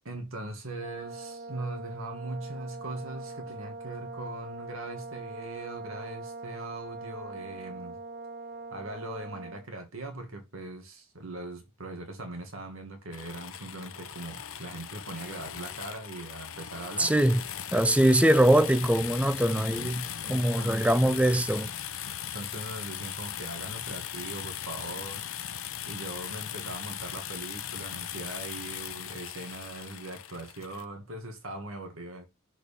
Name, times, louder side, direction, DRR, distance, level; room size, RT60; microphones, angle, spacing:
voice 1, 0.1-8.0 8.7-17.1 19.5-19.9 20.2-21.7 22.3-25.3 25.9-32.3, right 2 dB, 70° right, 2.0 m, -40 dB
Brass instrument, 0.8-9.7, right 3 dB, 40° right, 1.5 m, -42 dB
sound 1, 13.1-30.8, left 10 dB, 70° left, 0.7 m, -39 dB
voice 2, 17.0-17.4 17.7-20.0 20.3-21.7, right 1 dB, 5° right, 0.3 m, -22 dB
6.5 x 4.7 x 3.5 m
head